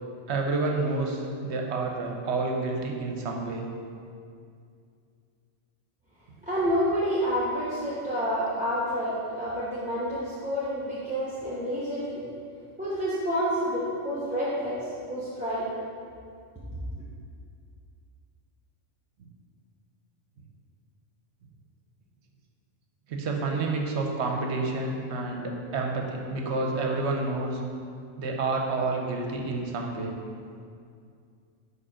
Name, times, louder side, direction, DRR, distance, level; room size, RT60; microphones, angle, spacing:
voice 1, 0.3-3.7 23.1-27.6 28.2-30.1, right 3 dB, 65° right, 1 dB, 0.9 m, -29 dB
voice 2, 6.4-12.3 12.8-14.8 15.1-15.7, equal, 5° right, -9 dB, 0.8 m, -29 dB
5.0 x 4.8 x 4.9 m, 2.3 s
omnidirectional pair, 1.3 m